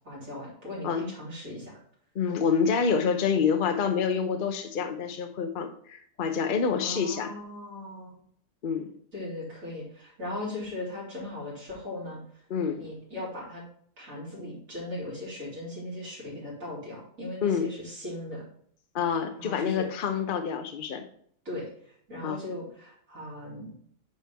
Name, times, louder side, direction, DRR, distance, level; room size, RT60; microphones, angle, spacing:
voice 1, 0.0-1.8 6.8-8.1 9.1-12.2 12.8-13.6 14.0-18.4 19.4-19.9 21.5-21.7 22.1-23.7, left 1 dB, 90° right, -6 dB, 3.6 m, -38 dB
voice 2, 2.1-7.3 8.6-8.9 12.5-12.8 17.4-17.7 18.9-21.0 22.2-22.4, left 6 dB, 45° left, 6 dB, 0.8 m, -27 dB
9.1 x 4.4 x 3.5 m, 0.63 s
omnidirectional pair, 1.4 m